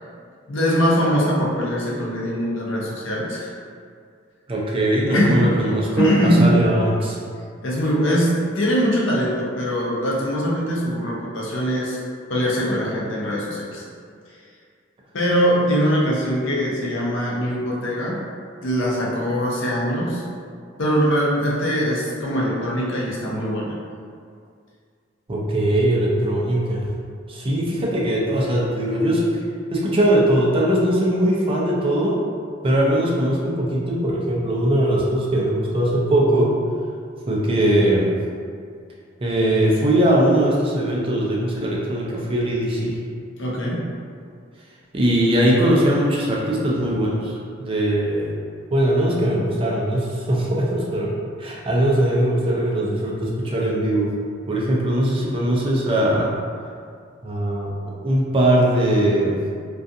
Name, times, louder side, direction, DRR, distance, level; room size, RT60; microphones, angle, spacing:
voice 1, 0.5-3.5 5.1-5.5 6.0-6.6 7.6-12.0 12.3-13.8 14.3-14.4 15.1-18.2 18.6-20.2 20.8-23.8 43.4-43.9, equal, 70° left, -5 dB, 0.6 m, -22 dB
voice 2, 4.5-7.2 25.3-26.9 27.3-29.2 29.7-32.1 32.6-36.5 37.3-38.2 39.2-42.9 44.9-48.3 48.7-51.1 51.4-54.1 54.5-56.3 57.2-59.4, right 1 dB, 30° right, -4 dB, 0.4 m, -20 dB
2.4 x 2.3 x 2.6 m, 2.2 s
head